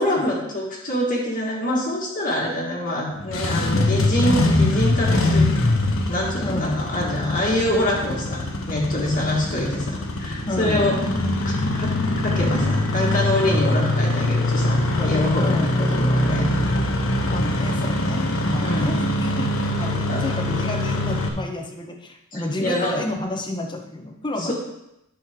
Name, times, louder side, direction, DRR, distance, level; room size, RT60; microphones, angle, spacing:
voice 1, 0.0-5.8 6.1-8.4 8.7-11.0 11.4-16.5 18.6-19.0 20.1-20.2 22.3-22.9 24.4-24.5, left 1 dB, 40° left, -4 dB, 1.8 m, -25 dB
Engine starting, 3.2-21.3, left 2 dB, 70° left, 1.1 m, -23 dB
voice 2, 6.4-6.8 10.5-10.8 15.4-15.7 17.3-19.5 19.8-24.5, left 1 dB, 20° left, 3 dB, 1.0 m, -30 dB
10.5 x 6.4 x 3.6 m, 0.86 s
head